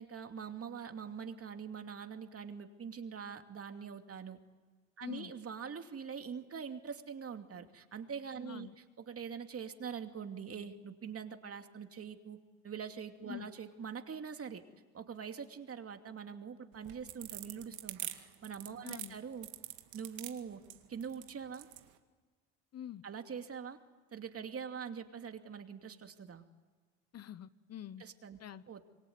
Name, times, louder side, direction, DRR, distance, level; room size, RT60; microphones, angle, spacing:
voice 1, 0.0-4.4 5.0-8.7 9.0-12.4 12.6-14.6 14.9-18.1 18.4-19.5 19.9-20.6 20.9-21.7 23.0-23.8 24.1-26.4 28.0-28.4 28.7-28.8, right 7 dB, 40° right, 6 dB, 2.7 m, -44 dB
voice 2, 5.0-5.3 8.4-8.7 13.3-13.5 18.8-19.1 22.7-23.0 27.1-28.0 28.4-28.6, left 11 dB, 45° left, 16 dB, 1.0 m, -45 dB
sound 1, 16.7-21.9, right 16 dB, 80° right, 2.2 m, -44 dB
27.5 x 23.5 x 9.4 m, 1.4 s
supercardioid pair, 70°, 35 cm